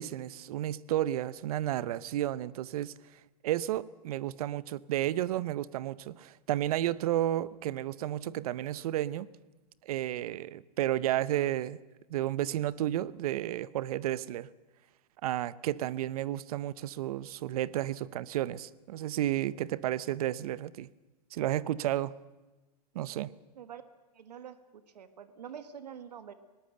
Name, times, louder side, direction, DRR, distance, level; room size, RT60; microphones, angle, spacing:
voice 1, 0.0-2.9 3.4-9.3 9.8-11.8 12.1-14.5 15.2-20.9 21.3-22.1 22.9-23.3, right 13 dB, 65° right, 20 dB, 0.8 m, -32 dB
voice 2, 24.1-26.3, right 8 dB, 85° right, 12 dB, 1.4 m, -46 dB
20.0 x 18.5 x 7.9 m, 1.2 s
hypercardioid pair, 120°, 20 cm